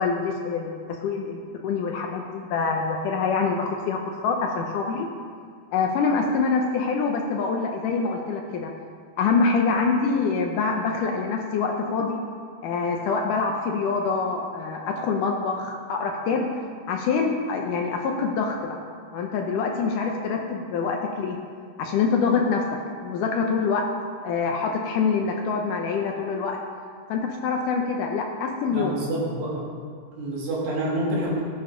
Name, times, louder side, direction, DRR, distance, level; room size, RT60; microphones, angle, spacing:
voice 1, 0.0-5.1 5.7-8.7 9.2-12.2 12.6-16.5 16.9-18.8 19.1-21.4 21.8-22.6 23.0-23.8 24.2-26.6 27.1-29.0, left 5 dB, 75° left, 1 dB, 2.1 m, -25 dB
voice 2, 28.7-29.6 30.1-31.4, right 1 dB, 70° right, -5 dB, 4.2 m, -27 dB
18.0 x 8.9 x 3.8 m, 2.1 s
omnidirectional pair, 4.3 m